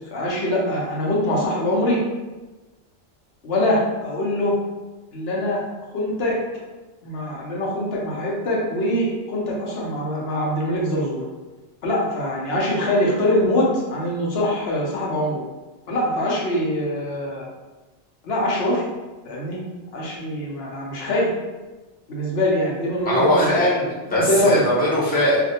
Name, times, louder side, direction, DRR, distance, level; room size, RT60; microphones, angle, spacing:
voice 1, 0.1-2.0 3.4-4.6 5.1-6.4 7.0-11.2 11.8-15.4 15.9-17.5 18.2-18.8 19.2-19.6 19.9-21.3 22.1-23.7 24.1-24.6, left 1 dB, 65° left, -4 dB, 0.9 m, -23 dB
voice 2, 23.0-25.4, equal, 10° left, -9 dB, 0.6 m, -20 dB
2.4 x 2.1 x 2.7 m, 1.2 s
omnidirectional pair, 1.2 m